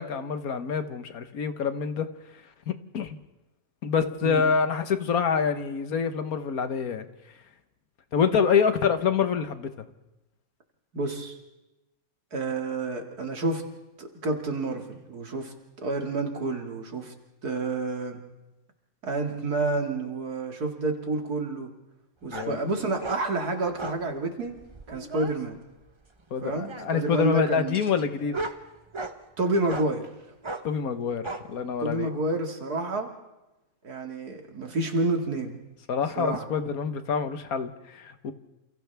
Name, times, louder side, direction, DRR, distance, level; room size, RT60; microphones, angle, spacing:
voice 1, 0.0-2.1 2.7-3.2 3.8-7.1 8.1-9.8 22.3-22.6 26.3-28.4 30.6-32.1 35.9-38.3, left 6 dB, 70° left, 9 dB, 1.6 m, -26 dB
voice 2, 10.9-11.4 12.3-13.6 14.0-15.5 15.8-17.1 17.4-18.2 19.0-21.7 22.2-24.6 24.9-25.6 26.4-27.8 29.4-30.1 31.8-33.1 33.8-35.6 36.2-36.5, right 2 dB, 85° right, 3 dB, 2.7 m, -29 dB
sound 1, 22.3-22.5 23.0-23.2 23.8-24.0 24.6-25.3 26.4-27.0 27.7-29.2 29.7-29.9 30.4-30.7 31.2-31.4, right 2 dB, 20° right, 0.9 m, -36 dB
28.5 x 28.5 x 3.5 m, 1.0 s
omnidirectional pair, 1.6 m